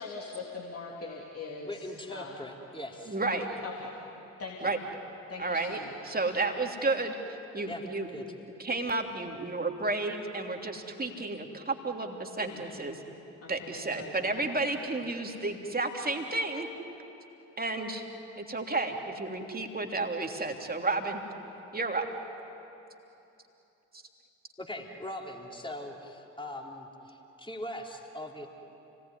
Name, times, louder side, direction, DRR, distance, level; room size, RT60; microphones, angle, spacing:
voice 1, 0.0-2.4 3.3-3.9 4.4-4.7 5.3-6.2 12.4-12.9 13.4-14.3 14.8-14.9, left 3 dB, 35° left, -2 dB, 3.4 m, -42 dB
voice 2, 1.6-3.2 7.6-7.8 8.1-8.3 24.6-28.5, left 1 dB, 10° left, 0 dB, 4.1 m, -41 dB
voice 3, 3.0-3.5 4.6-4.8 5.4-5.8 6.1-7.1 7.5-8.2 8.6-13.0 13.5-16.7 17.6-18.1 18.4-21.2 21.7-22.1, right 3 dB, 20° right, 3 dB, 3.2 m, -32 dB
29.5 x 19.5 x 9.8 m, 2.9 s
figure-of-eight pair, 40°, 40 cm